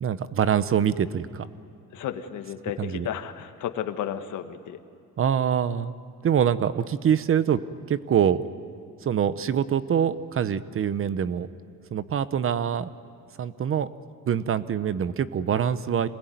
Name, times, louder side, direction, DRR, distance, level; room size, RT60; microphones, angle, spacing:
voice 1, 0.0-1.5 2.8-3.1 5.2-5.9 6.2-7.6 7.9-8.4 9.0-11.5 11.9-12.9 13.4-13.9 14.3-16.1, right 8 dB, 40° right, 15 dB, 0.9 m, -24 dB
voice 2, 1.9-4.8, left 10 dB, 65° left, 8 dB, 1.6 m, -33 dB
27.0 x 20.5 x 9.4 m, 2.5 s
cardioid pair, 115°, 32 cm